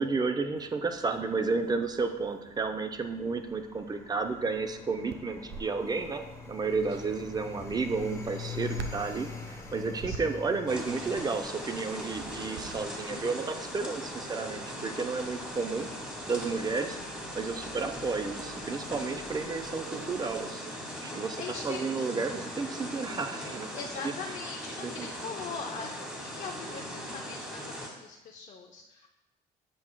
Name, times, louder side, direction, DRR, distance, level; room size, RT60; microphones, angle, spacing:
voice 1, 0.0-15.9 16.3-17.0 17.3-20.7 21.0-23.7 24.8-25.1, right 4 dB, 25° right, 7 dB, 0.5 m, -32 dB
sound 1, 0.6-20.4, left 5 dB, 15° left, 0.9 m, -46 dB
sound 2, 5.1-15.5, right 7 dB, 75° right, 0.5 m, -46 dB
voice 2, 6.6-7.0 10.1-10.2 21.4-21.9 23.7-29.1, left 5 dB, 45° left, 2 dB, 0.6 m, -41 dB
sound 3, 10.7-27.9, equal, 5° right, 1.3 m, -39 dB
7.6 x 5.7 x 2.2 m, 1.0 s
cardioid pair, 110°, 17 cm